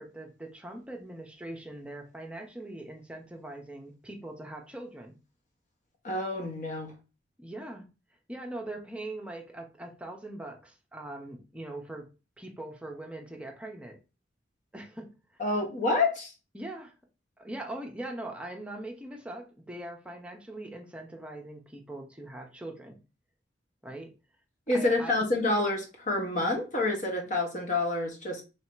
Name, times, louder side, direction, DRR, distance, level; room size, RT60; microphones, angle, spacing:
voice 1, 0.0-5.1 7.4-7.9 8.3-12.1 12.4-14.0 14.7-15.1 16.5-17.0 17.4-23.0 23.8-24.1 24.7-25.2, right 1 dB, 5° right, 0.7 m, -41 dB
voice 2, 6.0-6.9 15.4-16.3 24.7-28.4, left 2 dB, 40° left, 1.1 m, -28 dB
3.1 x 2.8 x 4.5 m
head